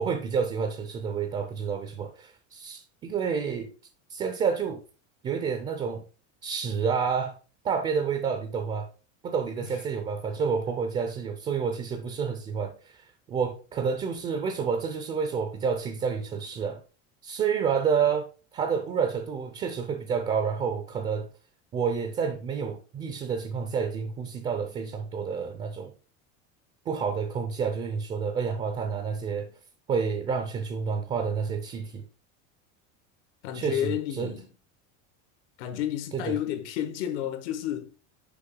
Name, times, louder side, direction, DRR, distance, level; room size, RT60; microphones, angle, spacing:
voice 1, 0.0-3.7 4.1-4.8 5.2-6.0 6.4-7.4 7.6-8.9 9.2-16.8 17.2-18.3 18.5-21.3 21.7-25.9 26.9-29.5 29.9-32.0 33.5-34.3 36.1-36.4, right 6 dB, 20° right, 0.4 m, -29 dB
voice 2, 33.4-34.5 35.6-37.9, left 11 dB, 75° left, 1.3 m, -31 dB
6.7 x 5.0 x 3.7 m
cardioid pair, 170°, 35 cm